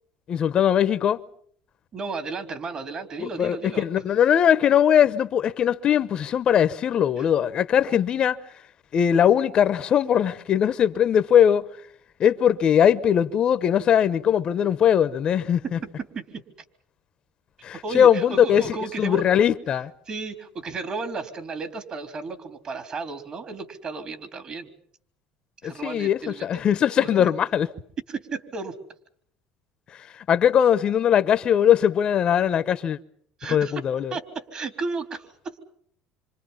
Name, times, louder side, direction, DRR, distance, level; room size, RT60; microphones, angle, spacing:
voice 1, 0.3-1.2 3.2-8.4 8.9-11.7 12.2-15.8 17.6-18.6 19.0-19.9 25.6-27.7 30.3-33.0 33.5-34.1, left 9 dB, 45° left, 0.9 m, -20 dB
voice 2, 1.9-3.9 7.2-7.3 15.6-15.7 16.1-16.3 17.8-19.3 20.1-24.7 25.6-27.3 28.1-28.7 33.4-33.8 34.1-35.5, right 4 dB, 40° right, 3.7 m, -34 dB
27.0 x 26.0 x 5.7 m
supercardioid pair, 105°, 2 cm